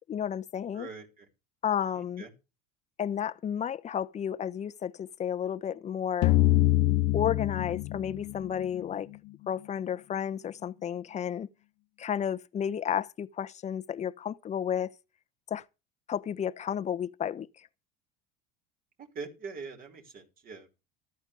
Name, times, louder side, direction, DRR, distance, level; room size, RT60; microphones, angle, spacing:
voice 1, 0.1-0.9 1.6-2.2 3.0-6.3 7.1-9.1 9.5-11.5 12.0-14.9 15.5-15.6 16.1-17.7, left 9 dB, 35° left, 1.0 m, -32 dB
voice 2, 0.7-1.3 1.9-2.3 19.1-20.7, right 4 dB, 45° right, 5.9 m, -43 dB
sound 1, 6.2-9.1, left 17 dB, 55° left, 0.6 m, -25 dB
14.5 x 13.5 x 3.6 m
supercardioid pair, 95°, 21 cm